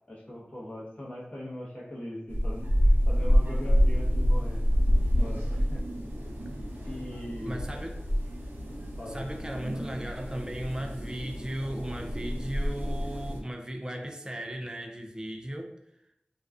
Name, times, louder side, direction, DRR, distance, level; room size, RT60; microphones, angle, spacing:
voice 1, 0.1-4.6 5.2-5.8 6.8-7.8 9.0-9.2 9.7-9.8, left 1 dB, 35° left, -6 dB, 0.7 m, -40 dB
sound 1, 2.3-13.4, equal, 85° right, 0.5 m, -27 dB
voice 2, 7.5-8.0 9.1-15.8, right 1 dB, 20° right, 3 dB, 0.3 m, -36 dB
2.5 x 2.2 x 2.3 m, 0.80 s
wide cardioid pair, 50°, 4 cm